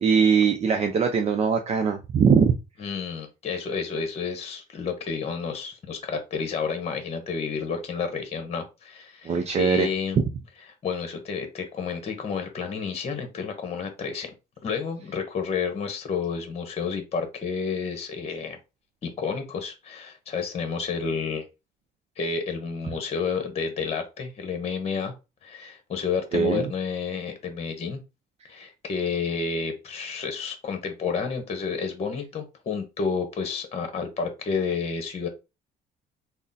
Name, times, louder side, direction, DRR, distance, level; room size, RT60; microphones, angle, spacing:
voice 1, 0.0-2.5 9.2-9.9 26.3-26.6, right 6 dB, 40° right, 5 dB, 0.5 m, -21 dB
voice 2, 2.8-10.2 10.8-14.3 14.6-18.6 19.0-21.4 22.2-25.1 25.4-28.0 28.4-35.3, left 5 dB, 40° left, 7 dB, 1.0 m, -30 dB
3.6 x 2.1 x 4.0 m, 0.27 s
cardioid pair, 110°, 17 cm